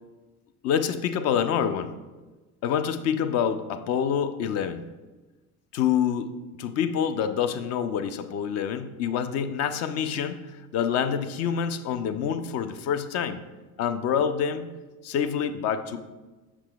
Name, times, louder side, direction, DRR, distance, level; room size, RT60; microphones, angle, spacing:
voice 1, 0.6-1.9 2.6-4.9 5.7-13.4 13.8-14.7 15.0-16.0, left 8 dB, 35° left, 11 dB, 0.4 m, -27 dB
7.2 x 5.9 x 2.2 m, 1.2 s
figure-of-eight pair, 70°, 46 cm